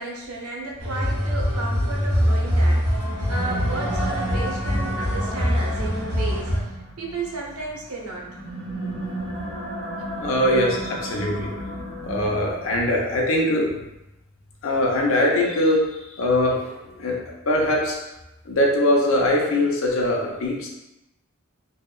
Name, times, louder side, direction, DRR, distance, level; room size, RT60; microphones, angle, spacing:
voice 1, 0.0-3.0 3.3-8.3, right 3 dB, 85° right, -1 dB, 0.5 m, -33 dB
sound 1, 0.8-6.6, equal, 50° right, 0.9 m, -23 dB
sound 2, 3.0-12.8, right 1 dB, 10° left, 0.7 m, -34 dB
voice 2, 10.2-11.5 12.0-13.7 14.6-17.2 17.5-18.0 18.5-20.7, left 1 dB, 65° left, -1 dB, 0.5 m, -22 dB
2.7 x 2.2 x 2.3 m, 0.94 s
head